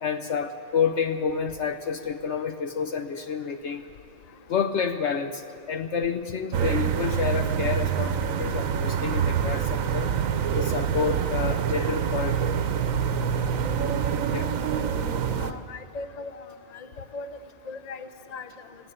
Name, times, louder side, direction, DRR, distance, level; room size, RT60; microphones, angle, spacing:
voice 1, 0.0-3.8 4.5-10.1 10.5-12.5 14.3-14.5, left 6 dB, 60° left, 7 dB, 1.0 m, -29 dB
sound 1, 6.5-15.5, right 8 dB, 70° right, 1.2 m, -26 dB
voice 2, 15.4-16.4 16.7-16.9 17.1-17.3 17.7-18.5, left 3 dB, 35° left, 9 dB, 0.8 m, -38 dB
18.0 x 14.5 x 9.9 m, 2.6 s
omnidirectional pair, 1.5 m